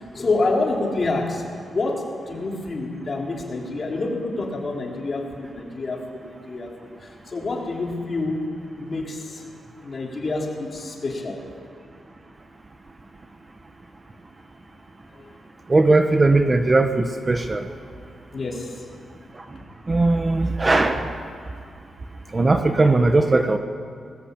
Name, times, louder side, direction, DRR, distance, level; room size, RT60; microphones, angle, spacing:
voice 1, 0.1-1.5 1.7-8.5 8.8-9.4 9.8-11.4 15.1-15.3 18.3-18.8, left 3 dB, 35° left, -1 dB, 4.7 m, -27 dB
voice 2, 15.7-17.6 19.9-21.1 22.3-23.6, right 2 dB, 25° right, 6 dB, 1.2 m, -18 dB
25.0 x 20.0 x 8.9 m, 2.3 s
wide cardioid pair, 135°, 0 cm